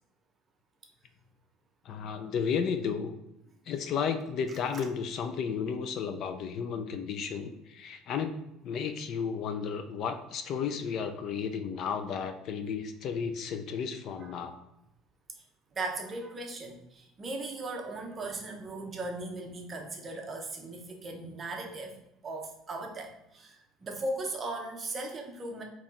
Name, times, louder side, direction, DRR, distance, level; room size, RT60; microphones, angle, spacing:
voice 1, 1.9-3.1 3.7-8.4 8.6-14.5, left 6 dB, 45° left, 8 dB, 0.3 m, -33 dB
voice 2, 15.7-21.9 22.2-25.6, right 2 dB, 25° right, 2 dB, 0.7 m, -38 dB
4.2 x 3.0 x 3.6 m, 0.89 s
cardioid pair, 155°, 0 cm